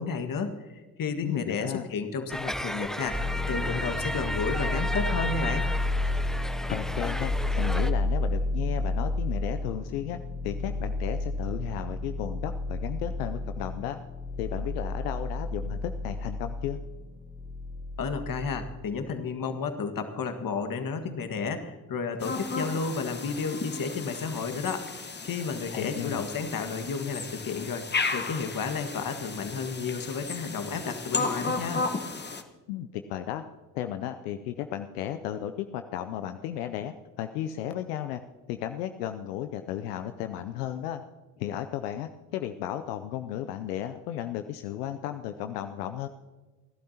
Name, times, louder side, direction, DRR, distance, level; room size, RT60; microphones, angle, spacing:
voice 1, 0.0-3.2 3.5-5.7 18.0-31.8, left 5 dB, 45° left, 8 dB, 1.8 m, -32 dB
voice 2, 1.2-1.9 6.7-10.2 10.4-14.0 14.4-16.8 25.7-26.2 32.7-33.4 33.7-38.2 38.5-41.0 41.4-46.1, left 11 dB, 80° left, 9 dB, 0.7 m, -34 dB
sound 1, 2.3-7.9, equal, ahead, 0.8 m, -34 dB
sound 2, 3.1-18.7, left 2 dB, 15° right, 2.6 m, -31 dB
sound 3, 22.2-32.4, left 4 dB, 20° left, 1.3 m, -34 dB
27.0 x 12.0 x 2.9 m, 1.3 s
hypercardioid pair, 55°, 46 cm